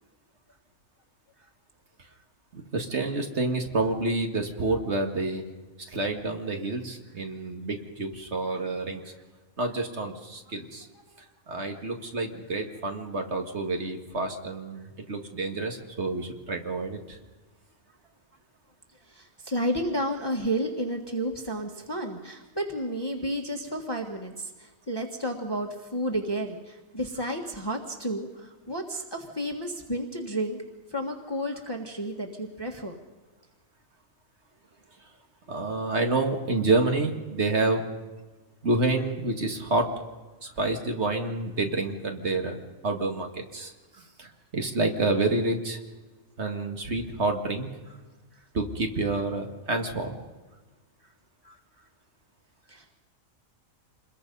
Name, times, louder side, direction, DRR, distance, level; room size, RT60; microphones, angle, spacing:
voice 1, 2.5-5.4 5.9-9.0 9.6-10.9 11.5-17.2 35.5-37.8 38.6-39.9 40.6-42.6 42.8-43.7 44.2-45.8 46.4-47.7 48.5-50.1, right 2 dB, 55° right, 4 dB, 2.2 m, -28 dB
voice 2, 19.0-30.6 30.9-32.9 40.4-40.6 43.9-44.0 48.3-48.4 51.4-51.8 52.7-53.0, right 1 dB, 20° left, 1 dB, 1.6 m, -32 dB
27.5 x 21.0 x 5.5 m, 1.2 s
omnidirectional pair, 1.4 m